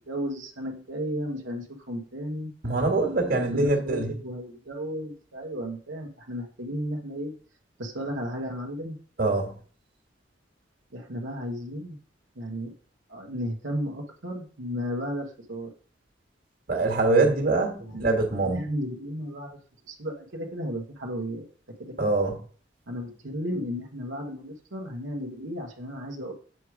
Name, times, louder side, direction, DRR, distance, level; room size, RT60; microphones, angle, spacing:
voice 1, 0.1-2.5 3.3-7.3 7.8-9.0 10.9-12.0 12.4-12.7 13.1-15.7 17.8-19.6 19.9-21.4 21.8-22.1 22.9-26.3, equal, 85° right, 1.2 m, -34 dB
voice 2, 2.6-4.1 9.2-9.5 16.7-18.6 22.0-22.4, right 3 dB, 50° right, 1.9 m, -24 dB
7.7 x 4.9 x 4.8 m
head